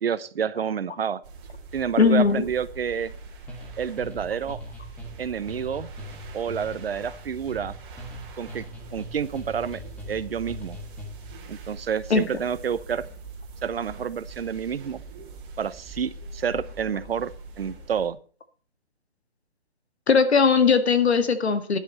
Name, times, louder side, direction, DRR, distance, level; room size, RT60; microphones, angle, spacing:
voice 1, 0.0-1.2 1.7-3.1 3.8-4.6 5.2-5.9 6.3-7.7 8.4-8.6 8.9-9.8 10.1-10.8 11.5-13.1 13.6-15.0 15.6-17.3 17.6-18.2, right 7 dB, 65° right, 16 dB, 1.0 m, -29 dB
sound 1, 1.2-18.1, right 3 dB, 25° right, 3.5 m, -43 dB
voice 2, 2.0-2.4 12.1-12.2 20.1-21.8, left 5 dB, 85° left, 10 dB, 2.1 m, -19 dB
sound 2, 3.5-11.4, left 2 dB, 5° left, 1.4 m, -42 dB
12.5 x 10.5 x 4.2 m, 0.40 s
hypercardioid pair, 160°, 32 cm